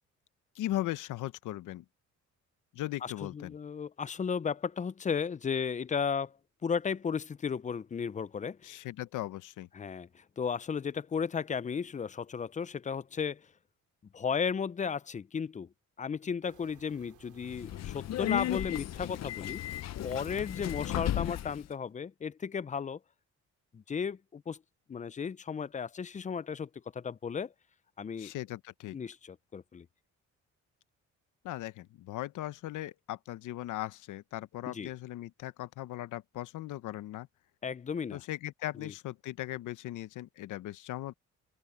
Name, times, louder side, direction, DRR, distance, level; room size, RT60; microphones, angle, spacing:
voice 1, 0.5-1.8 2.7-3.5 8.6-9.7 28.2-29.0 31.4-37.3 38.1-41.1, left 15 dB, 85° left, 0.9 m, -38 dB
voice 2, 3.0-6.4 6.6-8.7 9.7-13.4 14.1-15.7 16.0-19.6 20.0-23.0 23.7-24.6 24.9-27.5 28.0-28.3 28.9-29.9 34.7-34.9 37.6-38.2 38.8-38.9, left 6 dB, 25° left, 0.5 m, -34 dB
sound 1, 16.4-21.9, right 12 dB, 80° right, 3.0 m, -63 dB
Subway metro underground, 17.4-21.7, left 12 dB, 60° left, 0.7 m, -34 dB
open air
cardioid pair, 90°, 30 cm